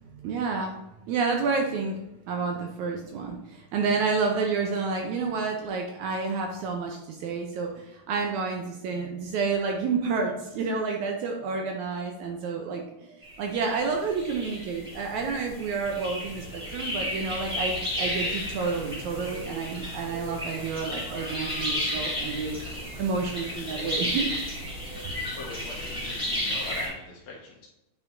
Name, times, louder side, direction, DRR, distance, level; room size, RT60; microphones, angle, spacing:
voice 1, 0.0-0.8 1.1-2.0 2.3-24.3, right 4 dB, 75° right, 1 dB, 1.9 m, -30 dB
sound 1, 13.2-26.9, left 1 dB, ahead, 1.7 m, -33 dB
voice 2, 25.4-27.7, left 4 dB, 70° left, -3 dB, 1.3 m, -41 dB
9.0 x 5.5 x 2.7 m, 0.94 s
omnidirectional pair, 3.8 m